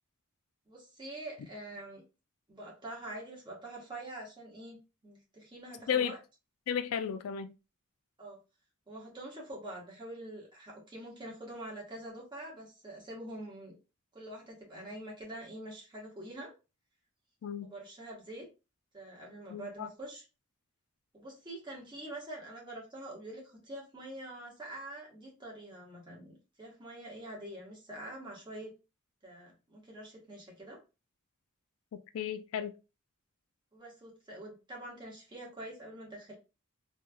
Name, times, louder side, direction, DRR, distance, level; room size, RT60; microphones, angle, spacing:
voice 1, 0.7-2.0 2.5-6.2 8.2-8.4 8.9-13.8 14.1-16.5 17.6-18.5 18.9-20.2 21.1-28.7 29.2-30.8 33.7-36.3, right 1 dB, 20° right, 1.2 m, -45 dB
voice 2, 6.7-7.5 17.4-17.7 19.5-19.9 31.9-32.7, left 8 dB, 80° left, 0.4 m, -34 dB
3.2 x 3.0 x 2.3 m
head